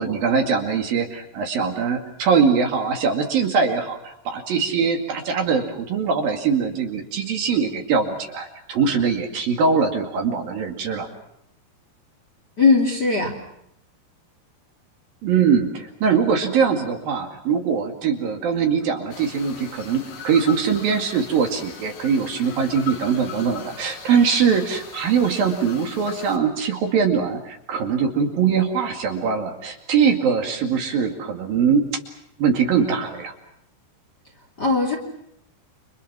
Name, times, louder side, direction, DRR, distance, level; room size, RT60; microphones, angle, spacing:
voice 1, 0.0-11.1 15.2-31.9 32.4-33.3, right 6 dB, 60° right, 3 dB, 3.8 m, -22 dB
voice 2, 12.6-13.4 34.6-35.0, left 4 dB, 25° left, 3 dB, 2.7 m, -18 dB
sound 1, 19.1-26.4, left 7 dB, 65° left, 4.1 m, -39 dB
29.5 x 26.5 x 6.2 m, 0.76 s
omnidirectional pair, 5.0 m